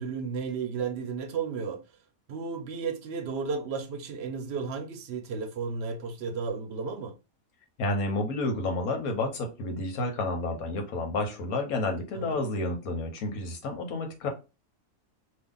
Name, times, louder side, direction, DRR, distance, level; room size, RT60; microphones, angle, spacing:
voice 1, 0.0-1.8 2.3-7.1 12.1-12.4, right 5 dB, 60° right, 0.7 m, -33 dB
voice 2, 7.8-14.3, left 2 dB, 90° left, 1.4 m, -30 dB
2.8 x 2.4 x 3.7 m
omnidirectional pair, 1.5 m